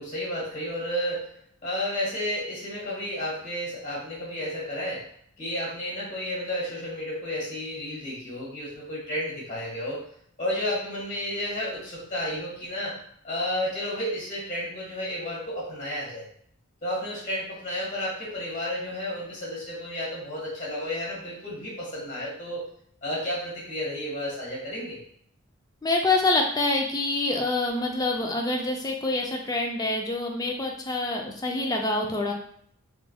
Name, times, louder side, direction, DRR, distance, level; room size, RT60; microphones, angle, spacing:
voice 1, 0.0-1.3 1.6-5.0 5.4-10.0 10.4-12.9 13.2-16.3 16.8-22.7 23.0-25.0, left 1 dB, 35° left, -7 dB, 1.3 m, -32 dB
voice 2, 25.8-32.3, left 2 dB, 15° left, 1 dB, 0.3 m, -26 dB
3.2 x 2.2 x 2.2 m, 0.65 s
head